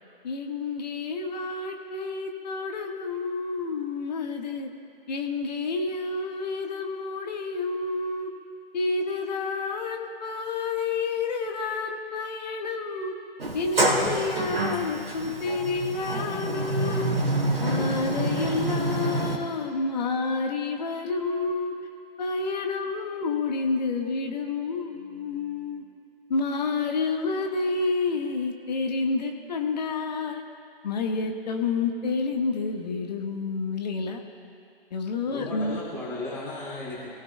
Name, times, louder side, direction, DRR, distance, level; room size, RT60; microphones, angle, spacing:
voice 1, 0.2-4.7 5.1-8.3 8.7-13.2 13.5-17.1 17.6-21.7 22.2-25.8 26.3-30.4 30.8-34.2 34.9-35.8, left 4 dB, 45° left, 3 dB, 1.4 m, -29 dB
Sliding door, 13.4-19.4, right 2 dB, 75° right, 2.4 m, -27 dB
voice 2, 35.3-37.1, left 2 dB, 10° left, -7 dB, 2.6 m, -35 dB
22.5 x 16.0 x 2.2 m, 2.4 s
figure-of-eight pair, 135°, 30 cm